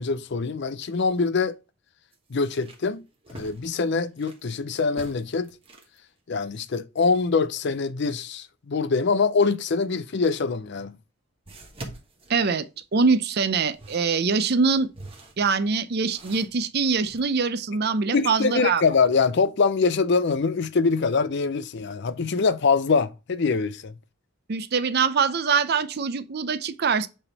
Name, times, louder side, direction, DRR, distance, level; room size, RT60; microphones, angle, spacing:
voice 1, 0.0-1.6 2.3-3.0 3.3-5.5 6.3-11.0 18.1-23.9, left 4 dB, 55° left, 0.5 m, -24 dB
sound 1, 0.9-1.1 1.5-1.6 2.1-4.5 4.9-6.0 10.2-10.3 11.5-13.0 13.5-17.2, right 2 dB, 25° right, 1.2 m, -45 dB
voice 2, 12.3-12.6 12.9-14.9 15.4-18.8 24.5-27.1, right 5 dB, 50° right, 0.5 m, -23 dB
8.4 x 3.5 x 4.0 m
head